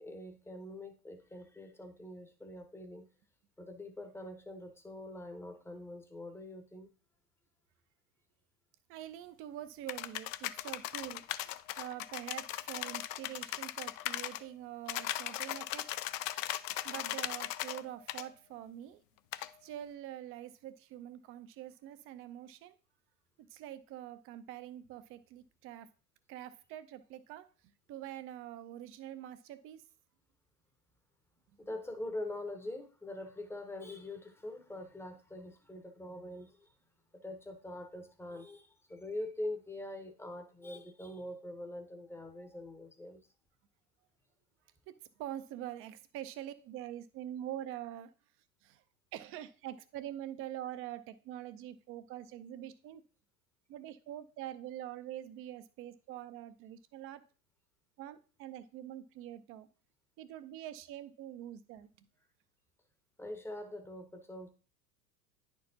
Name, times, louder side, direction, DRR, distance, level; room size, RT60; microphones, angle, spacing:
voice 1, 0.0-3.1 3.6-6.9 31.6-36.7 37.1-43.2 63.2-64.5, left 1 dB, 5° left, 6 dB, 0.8 m, -44 dB
voice 2, 8.9-11.2 11.8-15.8 16.8-19.0 19.6-22.7 23.5-25.9 26.3-27.5 27.9-29.8 44.9-48.1 48.6-48.8 49.1-53.0 53.7-57.2 58.0-59.7 60.2-62.1, right 12 dB, 30° right, 13 dB, 0.5 m, -45 dB
sound 1, 9.9-14.4 14.9-17.8 18.1-18.2 19.3-19.5, left 14 dB, 55° left, 0.5 m, -38 dB
9.9 x 4.5 x 2.7 m, 0.37 s
hypercardioid pair, 90°, 49 cm